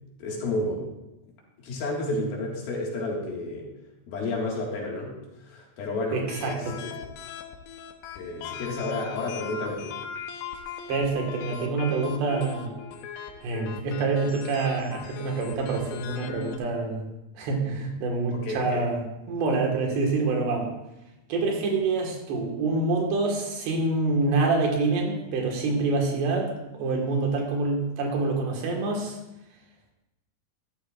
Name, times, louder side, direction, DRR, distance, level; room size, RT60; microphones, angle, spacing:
voice 1, 0.2-0.9 1.6-3.7 4.1-7.0 8.2-10.0 18.3-18.9, left 2 dB, 70° left, -2 dB, 3.6 m, -31 dB
sound 1, 6.1-16.6, left 7 dB, 85° left, 3.0 m, -39 dB
voice 2, 6.1-6.8 10.9-12.7 13.4-17.0 17.4-19.0 19.3-20.7 21.3-29.2, right 3 dB, 85° right, 0 dB, 3.9 m, -26 dB
14.5 x 11.5 x 2.5 m, 0.93 s
omnidirectional pair, 4.7 m